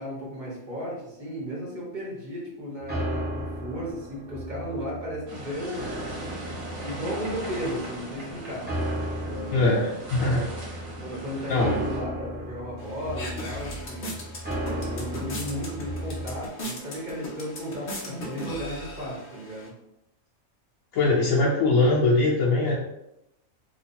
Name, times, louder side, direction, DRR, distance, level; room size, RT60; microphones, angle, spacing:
voice 1, 0.0-6.0 6.8-8.8 9.2-9.8 11.0-14.1 14.5-19.7, equal, 35° right, -6 dB, 1.2 m, -35 dB
sound 1, 2.8-16.4, equal, 10° right, 0.6 m, -35 dB
sound 2, 5.3-12.0, right 2 dB, 75° right, 1.4 m, -39 dB
voice 2, 9.5-10.5 11.5-11.9 20.9-22.8, left 2 dB, 75° left, -5 dB, 1.0 m, -22 dB
sound 3, 12.8-19.7, left 1 dB, 50° left, 0.9 m, -38 dB
3.0 x 2.2 x 4.2 m, 0.85 s
omnidirectional pair, 1.4 m